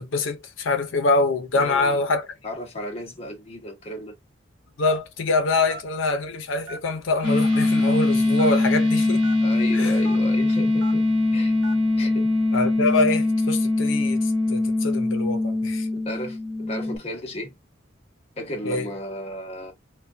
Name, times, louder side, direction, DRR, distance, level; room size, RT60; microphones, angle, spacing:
voice 1, 0.0-2.2 4.8-9.3 9.7-10.0 12.5-15.9 18.6-18.9, left 3 dB, 85° left, 0.6 m, -24 dB
voice 2, 1.5-2.0 2.4-4.1 9.4-11.1 11.3-11.5 12.0-12.3 15.9-17.5 18.4-19.7, equal, 30° left, 0.7 m, -34 dB
Telephone, 4.9-5.2 5.7-5.9 6.6-7.0 7.5-7.6 8.4-8.5 9.2-9.4 10.0-10.2 10.8-10.9 11.6-11.9 12.5-12.7, right 2 dB, 85° right, 0.9 m, -37 dB
sound 1, 7.2-17.0, left 2 dB, 30° right, 1.0 m, -22 dB
2.2 x 2.2 x 2.5 m
head